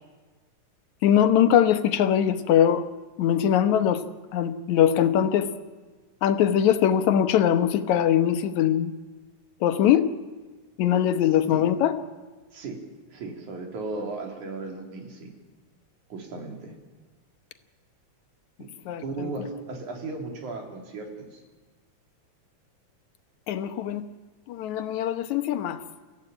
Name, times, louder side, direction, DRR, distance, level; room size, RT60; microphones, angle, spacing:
voice 1, 1.0-2.9 3.2-4.0 4.3-5.5 6.2-8.9 9.6-10.1 10.8-12.0 18.9-19.3 23.5-24.1 24.5-25.8, left 10 dB, 75° left, 10 dB, 2.4 m, -22 dB
voice 2, 12.5-12.8 13.1-15.3 16.1-16.7 18.6-18.7 19.0-21.4, right 3 dB, 85° right, 2 dB, 4.5 m, -36 dB
26.5 x 15.0 x 8.9 m, 1.3 s
omnidirectional pair, 3.4 m